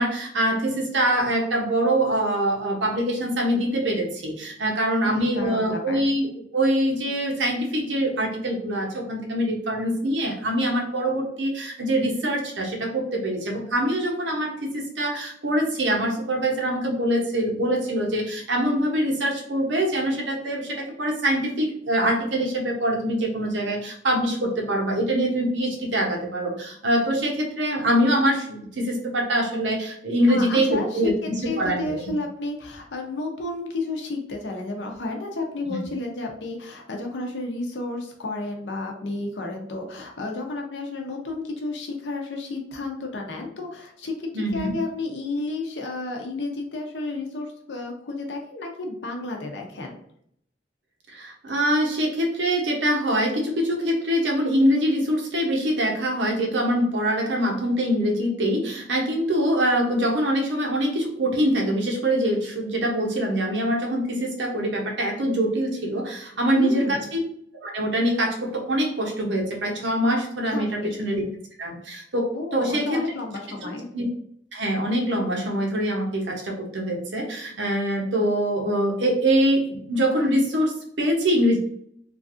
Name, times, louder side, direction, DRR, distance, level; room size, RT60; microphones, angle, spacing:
voice 1, 0.0-32.0 35.7-35.9 44.3-44.7 51.1-67.2 67.5-71.2 71.6-73.0 73.9-74.1 74.5-81.6, right 1 dB, 80° right, 0 dB, 0.8 m, -24 dB
voice 2, 5.0-6.1 30.3-50.0 66.6-67.1 70.4-70.9 72.3-73.9, left 2 dB, 75° left, 2 dB, 0.7 m, -32 dB
3.1 x 2.5 x 2.5 m, 0.68 s
head